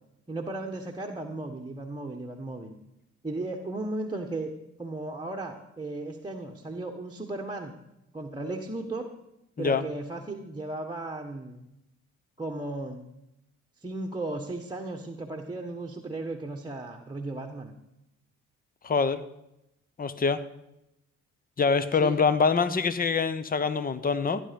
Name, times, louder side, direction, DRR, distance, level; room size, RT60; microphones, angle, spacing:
voice 1, 0.3-2.8 3.2-4.5 4.8-7.8 8.1-9.1 9.6-11.7 12.4-13.0 13.8-17.7 22.0-22.2, right 2 dB, 15° right, 0 dB, 1.4 m, -35 dB
voice 2, 18.8-19.2 20.0-20.4 21.6-24.4, left 5 dB, 30° left, 14 dB, 0.9 m, -25 dB
15.0 x 10.5 x 5.3 m, 0.87 s
cardioid pair, 90°, 30 cm